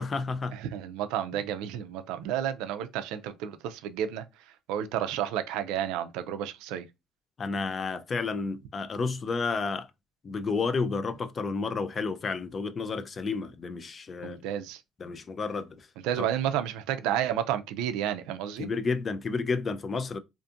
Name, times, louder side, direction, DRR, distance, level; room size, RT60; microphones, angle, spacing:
voice 1, 0.0-0.6 1.3-1.4 7.4-9.9 10.2-14.4 15.0-15.9 16.2-16.3 18.6-20.2, left 4 dB, 30° left, 0.3 m, -31 dB
voice 2, 0.5-4.2 4.7-6.9 14.2-14.8 16.0-18.7, right 10 dB, 85° right, 0.3 m, -31 dB
2.6 x 2.5 x 2.4 m
cardioid pair, 110°, 0 cm